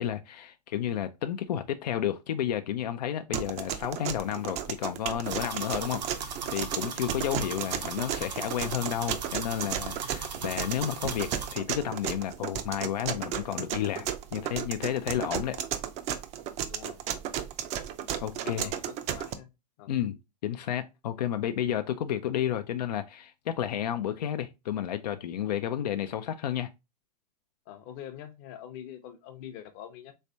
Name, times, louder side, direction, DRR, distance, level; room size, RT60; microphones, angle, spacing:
voice 1, 0.0-15.6 18.2-18.7 19.9-26.7, left 10 dB, 75° left, 0.4 m, -31 dB
sound 1, 3.3-19.3, right 10 dB, 30° right, 0.4 m, -34 dB
Swiss Stopwatch, 5.2-11.5, right 5 dB, 90° right, 0.8 m, -38 dB
voice 2, 15.3-15.7 16.7-17.0 18.1-18.8 19.1-19.5 19.8-19.9 27.7-30.1, left 10 dB, 45° left, 0.7 m, -45 dB
3.3 x 3.2 x 2.5 m
hypercardioid pair, 120°, 21 cm